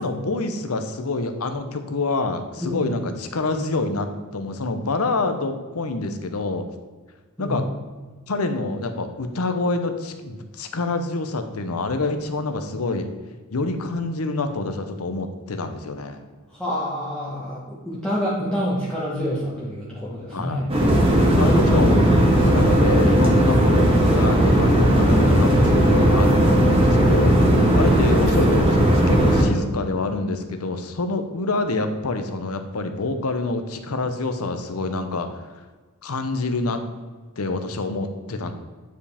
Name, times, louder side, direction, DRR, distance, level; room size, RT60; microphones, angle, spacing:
voice 1, 0.0-6.7 7.4-7.7 8.3-13.1 13.5-16.2 20.3-20.6 21.4-27.4 27.7-35.4 36.0-36.8 37.4-38.5, left 3 dB, 80° left, 7 dB, 0.8 m, -26 dB
voice 2, 16.5-20.7 21.2-22.1, equal, 5° left, -8 dB, 1.2 m, -27 dB
sound 1, 20.7-29.4, equal, 25° right, 1.4 m, -17 dB
9.2 x 4.9 x 3.5 m, 1.4 s
head